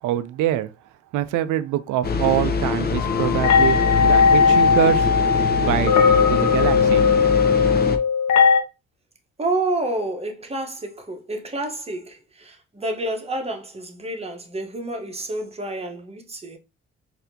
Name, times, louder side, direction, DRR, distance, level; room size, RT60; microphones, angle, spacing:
voice 1, 0.0-0.7 1.1-5.1 5.6-6.0 6.3-7.1, right 12 dB, 85° right, 0.5 m, -24 dB
sound 1, 2.0-8.0, left 4 dB, 30° left, 0.6 m, -24 dB
sound 2, 3.0-8.6, left 6 dB, 75° left, 0.8 m, -18 dB
voice 2, 9.4-16.6, right 2 dB, 20° right, 1.0 m, -29 dB
4.2 x 2.8 x 2.7 m
cardioid pair, 90°, 30 cm